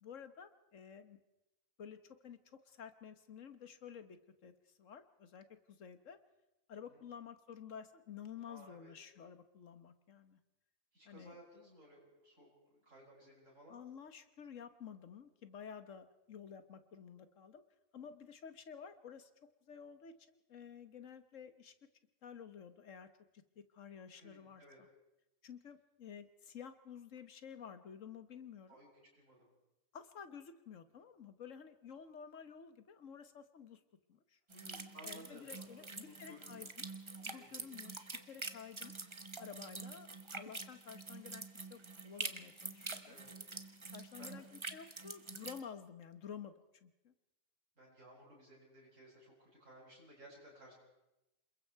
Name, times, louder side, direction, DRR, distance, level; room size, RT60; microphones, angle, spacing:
voice 1, 0.0-1.2 1.8-4.2 4.4-6.2 6.7-10.4 11.0-11.4 13.7-17.6 17.9-19.3 19.7-21.7 22.2-23.1 23.3-24.9 25.4-28.8 29.9-33.8 34.1-34.4 35.0-36.9 37.2-38.0 38.3-38.9 39.4-41.4 41.7-43.2 43.9-47.1, left 7 dB, 70° left, 10 dB, 1.6 m, -52 dB
voice 2, 8.5-8.9 10.9-13.8 24.2-24.8 28.7-28.9 29.1-29.5 34.5-35.6 36.0-36.7 37.3-38.1 43.0-43.5 44.2-44.4 47.8-50.7, equal, 65° right, -6 dB, 8.1 m, -58 dB
sound 1, 34.5-45.6, right 3 dB, 25° right, 1.1 m, -46 dB
27.5 x 22.0 x 4.7 m, 0.96 s
omnidirectional pair, 1.4 m